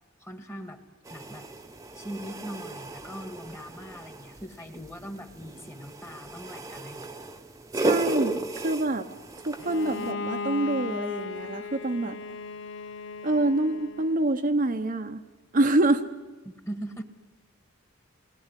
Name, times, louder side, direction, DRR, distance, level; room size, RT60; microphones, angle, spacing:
voice 1, 0.2-0.8 1.1-1.5 1.9-7.1 16.4-17.0, equal, 15° left, 7 dB, 1.8 m, -40 dB
sound 1, 1.1-10.1, right 2 dB, 15° right, 1.0 m, -35 dB
voice 2, 7.7-9.1 9.5-12.2 13.2-15.2 15.5-16.1, right 2 dB, 40° right, 5 dB, 0.9 m, -26 dB
Bowed string instrument, 9.6-14.3, left 4 dB, 60° left, 0.8 m, -36 dB
28.5 x 20.0 x 9.9 m, 1.3 s
head